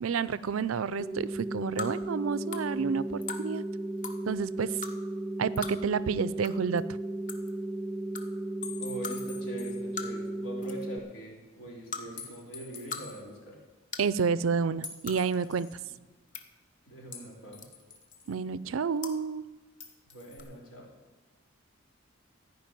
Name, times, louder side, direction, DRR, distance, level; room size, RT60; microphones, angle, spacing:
voice 1, 0.0-3.6 4.3-4.7 5.4-6.8 14.0-15.7 18.3-19.4, right 5 dB, 90° right, 17 dB, 0.5 m, -30 dB
sound 1, 1.0-11.0, right 1 dB, 5° right, 0.3 m, -35 dB
sound 2, 1.8-1.9 2.5-2.6 3.2-3.4 4.0-4.2 4.8-4.9 5.6-5.7 6.4-6.5 6.8-6.9 7.3-7.5 8.1-8.2 9.0-9.2 10.0-10.3 10.6-10.9 11.9-12.0 12.7-13.0 13.3-13.4 13.9-14.1 15.0-15.2 16.0-16.4 17.6-17.9 19.0-19.2 20.3-20.4, left 5 dB, 40° left, 1.0 m, -38 dB
sound 3, 8.6-9.9 10.2-10.3 12.2-13.2 14.8-15.8 17.1-18.4 19.8-20.5, left 5 dB, 60° left, 1.8 m, -45 dB
voice 2, 8.8-13.6 15.8-15.9 16.9-17.6 20.1-20.9, right 1 dB, 85° left, -3 dB, 4.0 m, -43 dB
14.5 x 5.4 x 9.1 m, 1.2 s
head